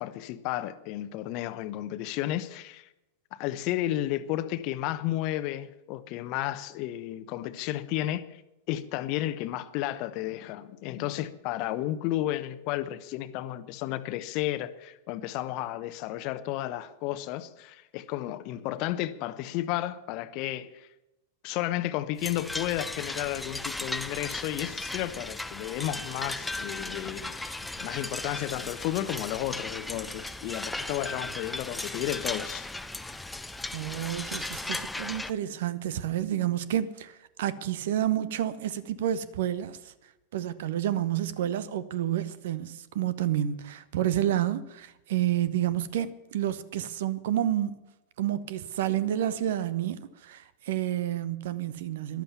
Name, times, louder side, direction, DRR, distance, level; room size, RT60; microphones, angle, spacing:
voice 1, 0.0-2.9 3.3-8.4 8.7-20.9 21.4-32.7, left 14 dB, 45° left, 0.9 m, -32 dB
sound 1, 22.2-35.3, left 2 dB, 5° left, 0.7 m, -36 dB
voice 2, 33.7-39.9 40.3-47.8 48.2-52.2, right 11 dB, 55° right, 0.9 m, -29 dB
13.5 x 12.0 x 7.1 m
figure-of-eight pair, 90°, 0 cm